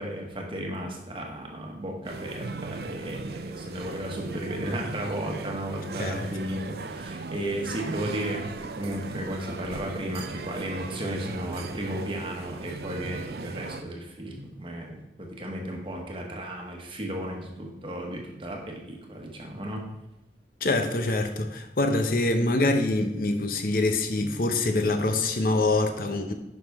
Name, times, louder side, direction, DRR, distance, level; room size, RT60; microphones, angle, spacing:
voice 1, 0.0-19.8, right 1 dB, 30° right, 1 dB, 1.3 m, -34 dB
sound 1, 2.0-13.8, right 3 dB, 60° right, 0.5 m, -37 dB
voice 2, 20.6-26.3, left 2 dB, 50° left, 6 dB, 0.7 m, -25 dB
10.0 x 5.9 x 3.5 m, 0.97 s
head